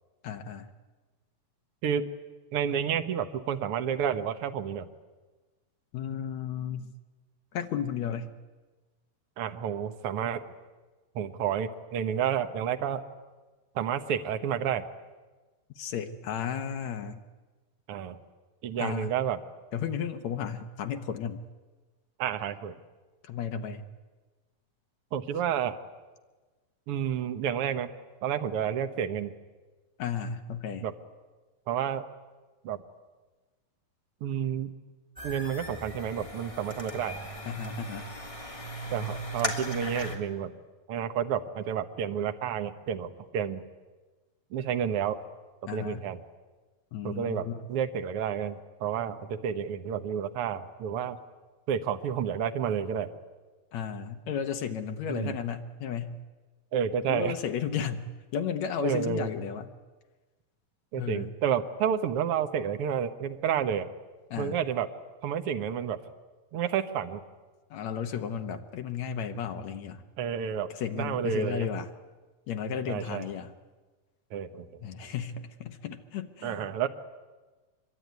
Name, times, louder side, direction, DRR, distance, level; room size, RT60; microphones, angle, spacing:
voice 1, 0.2-0.7 5.9-6.9 7.5-8.3 15.8-17.2 18.8-19.1 19.7-21.4 23.2-23.9 30.0-30.9 37.5-38.1 45.7-46.0 46.9-47.7 53.7-56.2 57.1-58.1 58.3-59.7 61.0-61.3 64.3-64.6 67.7-70.0 70.7-71.9 72.5-73.5 74.8-76.7, left 7 dB, 65° left, 6 dB, 1.9 m, -34 dB
voice 2, 2.5-4.9 9.4-10.4 11.1-13.0 13.7-14.8 17.9-18.2 18.6-19.4 22.2-22.8 25.1-25.8 26.9-27.9 28.2-29.3 30.8-30.9 31.7-32.0 32.6-32.8 34.2-34.7 35.2-37.2 38.9-40.5 40.9-43.6 44.5-45.2 45.7-46.2 47.0-51.2 51.7-53.1 55.1-55.3 56.7-57.4 58.8-59.3 60.9-63.9 64.4-64.9 65.2-66.0 66.5-67.2 70.2-71.7 72.9-73.3 74.3-74.7 76.4-76.9, right 8 dB, 70° right, 7 dB, 1.3 m, -30 dB
sound 1, 35.2-40.2, equal, 10° left, 2.6 m, -37 dB
24.5 x 23.0 x 9.5 m, 1.3 s
omnidirectional pair, 4.2 m